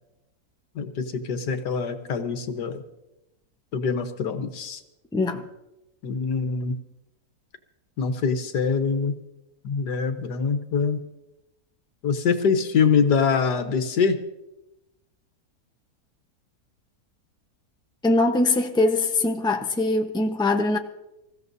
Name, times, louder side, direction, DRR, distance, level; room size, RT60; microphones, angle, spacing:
voice 1, 0.8-2.7 3.7-4.8 6.0-6.8 8.0-9.1 9.6-11.0 12.0-14.2, left 5 dB, 90° left, 1.8 m, -24 dB
voice 2, 5.1-5.4 18.0-20.8, left 2 dB, 5° left, 0.7 m, -22 dB
27.0 x 15.0 x 2.7 m
omnidirectional pair, 1.7 m